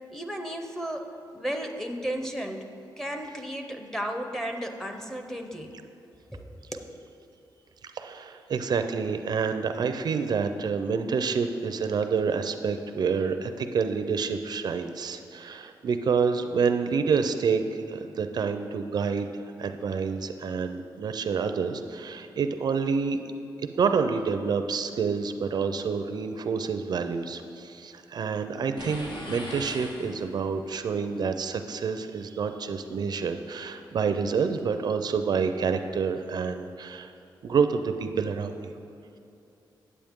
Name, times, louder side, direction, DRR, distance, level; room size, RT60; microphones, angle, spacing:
voice 1, 0.1-1.1 1.3-2.7 3.0-5.7 6.3-6.9, equal, 5° left, 4 dB, 0.7 m, -34 dB
voice 2, 7.9-23.2 23.8-37.1 37.4-38.7, right 5 dB, 60° right, 8 dB, 0.4 m, -28 dB
sound 1, 28.8-30.6, left 1 dB, 70° left, 1.0 m, -39 dB
8.9 x 8.3 x 3.6 m, 2.8 s
cardioid pair, 105°, 8 cm